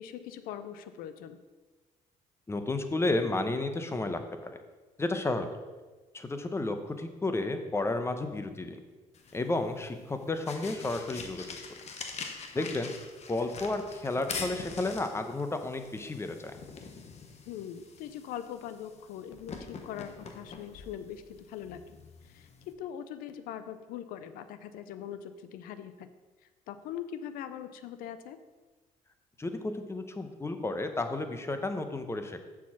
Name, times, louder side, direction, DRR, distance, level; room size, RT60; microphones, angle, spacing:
voice 1, 0.0-1.4 12.5-12.7 17.5-21.8 22.3-26.1 26.7-28.4, left 9 dB, 80° left, 11 dB, 0.5 m, -41 dB
voice 2, 2.5-4.6 5.0-5.5 6.1-8.8 9.3-11.6 12.5-12.9 13.3-16.5 29.4-32.4, left 2 dB, 20° left, 7 dB, 0.8 m, -32 dB
sound 1, 9.1-22.7, left 5 dB, 50° left, 1.0 m, -44 dB
7.0 x 4.8 x 5.8 m, 1.3 s
cardioid pair, 90°, 15 cm